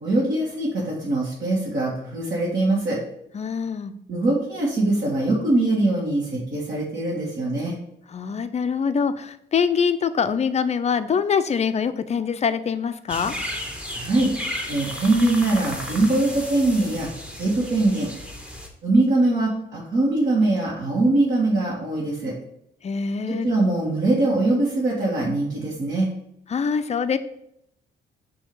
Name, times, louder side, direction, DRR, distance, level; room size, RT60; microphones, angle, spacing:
voice 1, 0.0-3.0 4.1-7.7 13.9-14.3 14.7-17.1 17.4-18.1 18.8-22.3 23.3-26.1, right 2 dB, 50° right, -6 dB, 1.7 m, -22 dB
voice 2, 3.3-3.9 8.1-13.3 22.8-23.5 26.5-27.2, left 6 dB, 35° left, 11 dB, 0.5 m, -24 dB
sound 1, 13.1-18.7, left 1 dB, 5° right, 1.0 m, -34 dB
6.2 x 2.8 x 5.4 m, 0.74 s
cardioid pair, 90°, 20 cm